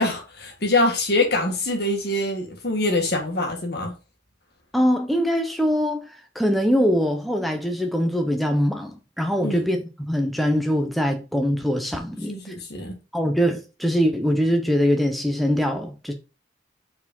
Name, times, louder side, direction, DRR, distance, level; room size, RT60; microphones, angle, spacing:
voice 1, 0.0-3.9 9.4-9.6 12.3-12.9, left 2 dB, 60° left, 1.8 m, -24 dB
voice 2, 4.7-6.1 6.3-9.8 10.1-12.5 13.1-16.1, equal, ahead, 0.7 m, -22 dB
4.9 x 4.4 x 5.5 m
head